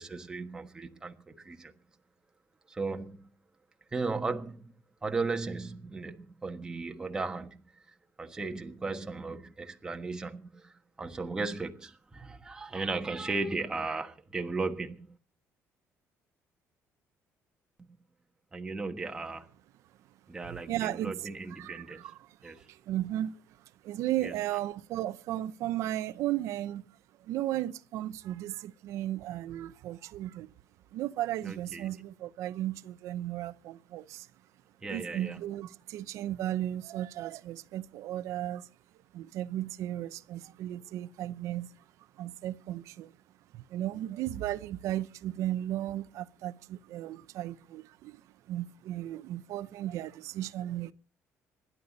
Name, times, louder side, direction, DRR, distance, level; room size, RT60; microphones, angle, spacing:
voice 1, 0.0-1.7 2.7-3.3 3.9-4.7 5.0-15.2 18.5-19.5 20.3-22.1 22.4-22.7 24.2-24.3 31.4-31.9 34.8-35.4, right 3 dB, 15° right, 1.3 m, -36 dB
voice 2, 20.4-21.1 21.6-23.4 23.8-26.8 27.2-30.5 30.9-34.3 34.9-38.7 39.1-41.7 42.2-43.1 43.5-48.2 48.5-50.9, right 13 dB, 70° right, 0.7 m, -35 dB
26.0 x 11.5 x 4.1 m
cardioid pair, 175°, 5 cm